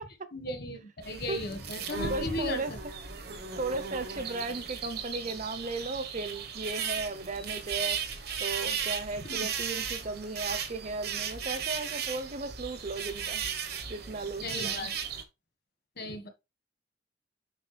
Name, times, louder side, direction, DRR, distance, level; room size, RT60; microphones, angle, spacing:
voice 1, 0.3-2.8 9.2-9.5 14.4-14.9 16.0-16.3, left 2 dB, 60° left, 1.6 m, -36 dB
sound 1, 1.0-15.2, right 7 dB, 60° right, 1.2 m, -36 dB
voice 2, 2.1-2.9 3.6-8.0 8.4-13.4 13.9-14.9, right 3 dB, 45° right, 0.8 m, -36 dB
7.6 x 5.6 x 3.4 m
head